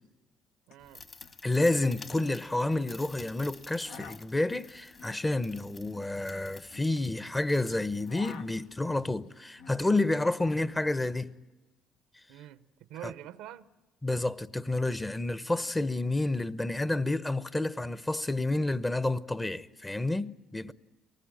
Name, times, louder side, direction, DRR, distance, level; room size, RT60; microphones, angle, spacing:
sound 1, 0.7-0.8 1.0-1.4 1.7-2.9 3.6-7.5 7.8-10.1 10.3-11.3, left 6 dB, 80° left, 1.0 m, -51 dB
voice 1, 0.7-1.1 12.3-13.7 20.6-20.7, right 12 dB, 75° right, 0.7 m, -46 dB
sound 2, 0.8-8.9, left 3 dB, 35° left, 1.5 m, -52 dB
voice 2, 1.4-11.3 13.0-13.1 14.0-20.7, left 2 dB, 15° left, 0.8 m, -29 dB
23.0 x 19.5 x 9.0 m
hypercardioid pair, 65°, 0 cm